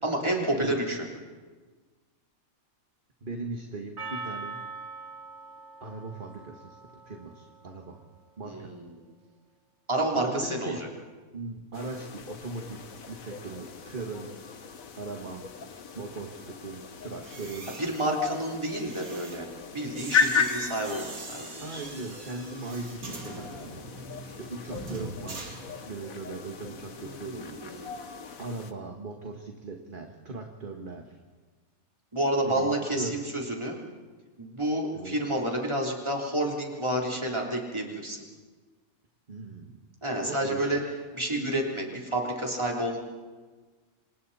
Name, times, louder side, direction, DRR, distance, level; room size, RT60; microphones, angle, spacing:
voice 1, 0.0-1.0 8.4-8.9 9.9-10.9 17.8-19.5 19.7-21.8 26.9-27.9 32.1-33.8 34.4-38.2 40.0-40.8 41.1-43.0, right 1 dB, 20° right, -1 dB, 3.7 m, -30 dB
voice 2, 3.2-4.6 5.8-8.0 8.4-8.7 10.1-10.8 11.3-14.4 14.9-15.5 16.0-17.7 21.6-27.6 27.8-28.1 28.4-31.2 32.4-33.2 34.9-35.2 39.3-39.8 40.2-40.8, right 3 dB, 35° right, 2 dB, 1.8 m, -39 dB
Percussion, 4.0-8.3, right 3 dB, 50° right, 1.6 m, -42 dB
sound 1, 11.7-28.7, left 6 dB, 75° left, 1.6 m, -36 dB
sound 2, 17.1-26.2 26.5-26.8, right 2 dB, 80° right, 2.7 m, -43 dB
27.5 x 26.5 x 4.3 m, 1.4 s
omnidirectional pair, 1.5 m